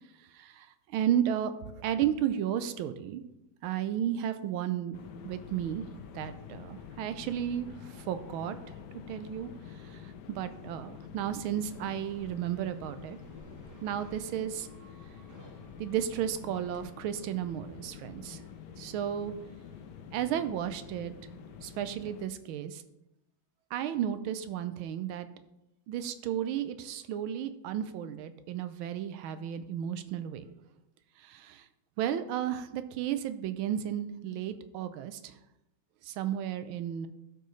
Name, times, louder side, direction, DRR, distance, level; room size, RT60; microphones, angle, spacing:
voice 1, 0.3-0.7 0.9-1.5 1.8-3.2 3.6-5.0 5.2-5.8 6.1-7.7 8.1-8.6 9.1-9.5 10.3-13.2 13.8-14.7 15.8-18.4 18.8-19.3 20.1-21.1 21.6-22.8 23.7-25.3 25.9-30.4 31.2-31.6 32.0-35.3 36.1-37.1, right 10 dB, 85° right, 11 dB, 1.4 m, -33 dB
sound 1, 4.9-22.3, left 7 dB, 70° left, 1.1 m, -48 dB
sound 2, 11.6-16.8, equal, 15° right, 0.7 m, -55 dB
13.0 x 4.6 x 3.2 m, 0.88 s
omnidirectional pair, 2.2 m